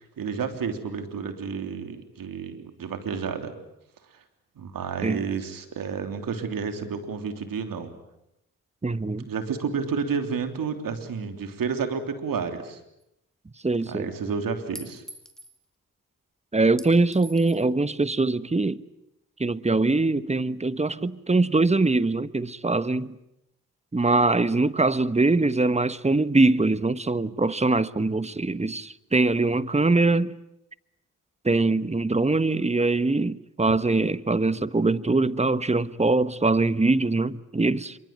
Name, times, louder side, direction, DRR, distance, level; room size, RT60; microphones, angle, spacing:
voice 1, 0.0-3.6 4.1-4.2 4.6-7.9 9.2-12.8 13.9-15.0 33.9-34.0, right 6 dB, 70° right, 3.3 m, -31 dB
voice 2, 8.8-9.3 13.6-14.1 16.5-18.8 19.4-23.2 23.9-30.3 31.4-38.0, right 3 dB, 20° right, 1.2 m, -23 dB
Chink clink, 13.0-13.1 14.8-15.6 16.8-17.7, equal, ahead, 3.2 m, -44 dB
26.5 x 24.0 x 8.8 m
supercardioid pair, 50°, 35 cm